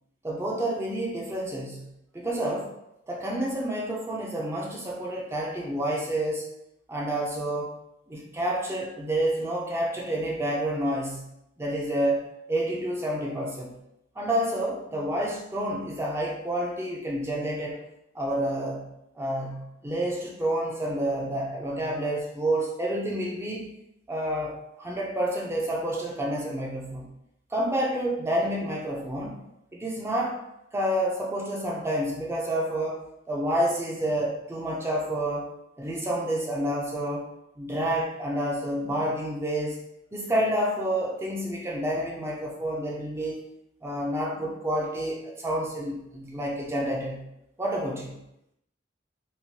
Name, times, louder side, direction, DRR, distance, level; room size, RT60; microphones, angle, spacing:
voice 1, 0.2-2.7 3.1-6.5 6.9-7.8 8.1-11.3 11.6-13.7 14.2-17.8 18.1-18.9 19.2-23.7 24.1-27.1 27.5-29.4 29.7-30.4 30.7-33.0 33.3-35.5 35.8-37.2 37.6-39.8 40.1-43.5 43.8-47.3 47.6-48.2, right 1 dB, 15° right, -2 dB, 0.4 m, -29 dB
3.1 x 2.1 x 2.7 m, 0.82 s
head